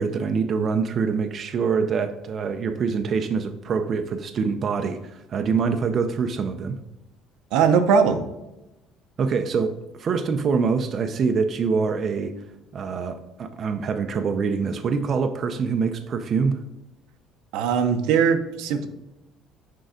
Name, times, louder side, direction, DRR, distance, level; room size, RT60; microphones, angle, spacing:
voice 1, 0.0-6.8 9.2-12.5 12.7-16.6, right 5 dB, 35° right, 7 dB, 0.5 m, -25 dB
voice 2, 7.5-8.2 17.5-18.9, right 6 dB, 85° right, 7 dB, 0.8 m, -20 dB
6.4 x 4.5 x 5.0 m, 0.96 s
cardioid pair, 150°, 0 cm